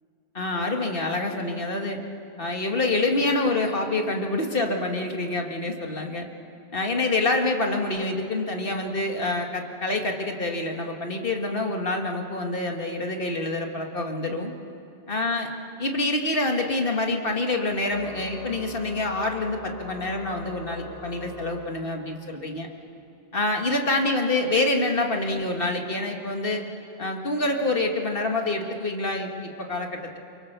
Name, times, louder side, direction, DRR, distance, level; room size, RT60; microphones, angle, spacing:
voice 1, 0.3-2.0 2.4-6.3 6.7-14.5 15.1-15.5 15.8-22.7 23.3-26.6 27.0-30.2, left 2 dB, 60° left, 3 dB, 2.0 m, -26 dB
Organ, 17.7-22.2, left 2 dB, 90° left, 4.4 m, -43 dB
24.0 x 24.0 x 6.8 m, 2.8 s
omnidirectional pair, 1.1 m